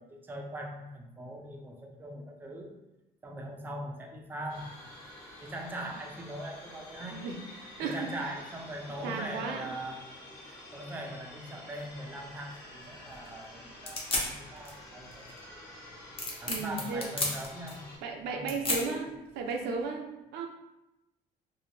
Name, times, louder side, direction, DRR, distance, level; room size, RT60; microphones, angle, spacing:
voice 1, 0.0-2.7 3.2-4.7 5.4-7.2 7.6-10.0 10.4-15.7 16.4-19.1, right 1 dB, 10° right, 1 dB, 0.3 m, -41 dB
sound 1, 4.5-18.0, left 1 dB, 70° left, 1.0 m, -49 dB
voice 2, 7.8-8.1 9.0-9.6 16.5-17.1 18.0-20.5, right 4 dB, 85° right, 3 dB, 0.4 m, -35 dB
sound 2, 11.7-19.8, left 2 dB, 35° left, 0.7 m, -37 dB
2.6 x 2.0 x 3.1 m, 0.95 s
cardioid pair, 110°, 17 cm